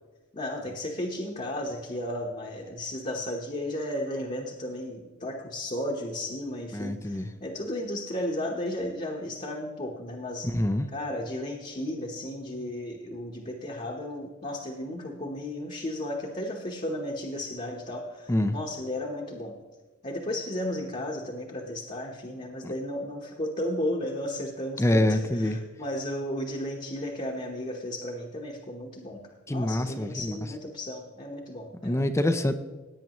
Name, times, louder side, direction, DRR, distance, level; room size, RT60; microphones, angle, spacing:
voice 1, 0.3-10.5 10.9-19.5 20.0-29.2 29.5-32.1, left 1 dB, 30° left, 0 dB, 1.1 m, -34 dB
voice 2, 6.7-7.3 10.5-10.9 18.3-18.6 22.6-22.7 24.8-25.6 29.5-30.4 31.8-32.5, left 1 dB, 15° left, 9 dB, 0.5 m, -25 dB
17.0 x 9.3 x 3.0 m, 1.3 s
head